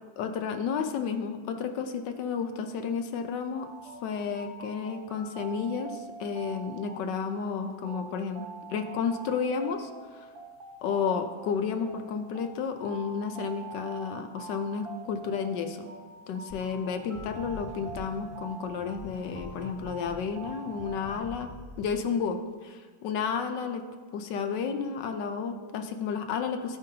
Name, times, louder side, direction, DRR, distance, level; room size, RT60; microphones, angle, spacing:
voice 1, 0.2-3.7 4.0-8.4 8.7-10.3 10.8-15.9 16.3-21.5 21.8-23.9 24.1-26.8, left 6 dB, 70° left, 6 dB, 1.2 m, -32 dB
sound 1, 3.5-21.2, right 4 dB, 50° right, 1.5 m, -45 dB
sound 2, 16.5-22.3, left 2 dB, 5° right, 1.0 m, -46 dB
15.0 x 5.2 x 2.8 m, 1.5 s
omnidirectional pair, 2.2 m